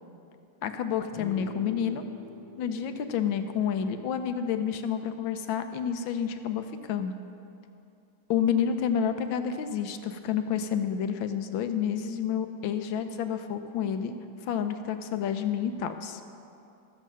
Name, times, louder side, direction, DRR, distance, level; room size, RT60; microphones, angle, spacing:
voice 1, 0.6-2.0 2.6-7.2 8.3-14.1 14.5-16.2, left 8 dB, 75° left, 8 dB, 1.4 m, -29 dB
sound 1, 1.1-4.7, left 2 dB, 5° right, 1.0 m, -45 dB
13.0 x 7.4 x 6.4 m, 2.7 s
omnidirectional pair, 2.2 m